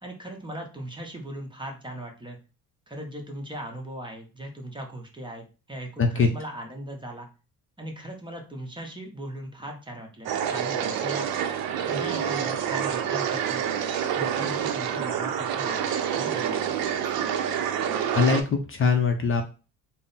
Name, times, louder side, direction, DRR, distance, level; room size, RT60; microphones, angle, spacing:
voice 1, 0.0-2.4 2.9-7.3 7.8-11.3 11.9-13.6 14.1-16.8, right 1 dB, 15° right, 2 dB, 0.7 m, -38 dB
sound 1, 10.3-18.4, right 9 dB, 85° right, 0.6 m, -27 dB
voice 2, 18.1-19.4, left 5 dB, 35° left, 5 dB, 0.5 m, -22 dB
3.6 x 2.0 x 3.9 m, 0.33 s
cardioid pair, 110°, 35 cm